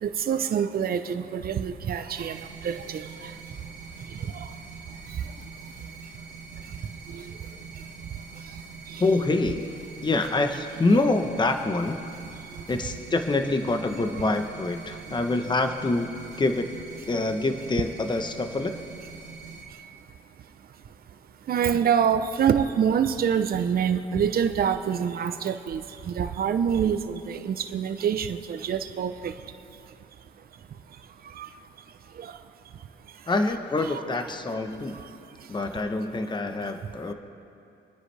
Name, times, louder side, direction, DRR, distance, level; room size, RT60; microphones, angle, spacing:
voice 1, 0.0-3.3 4.3-4.5 7.1-7.2 8.9-9.0 21.5-29.3 31.4-31.5 32.2-32.3 33.9-34.0, right 8 dB, 50° right, 9 dB, 0.7 m, -26 dB
sound 1, 2.2-19.6, right 4 dB, 90° right, 1.9 m, -44 dB
voice 2, 9.0-9.7 10.0-12.0 12.7-16.1 16.4-16.7 17.1-18.7 33.3-35.0 35.5-37.1, left 2 dB, 20° left, 6 dB, 1.0 m, -26 dB
27.5 x 9.9 x 3.4 m, 2.6 s
cardioid pair, 90°, 20 cm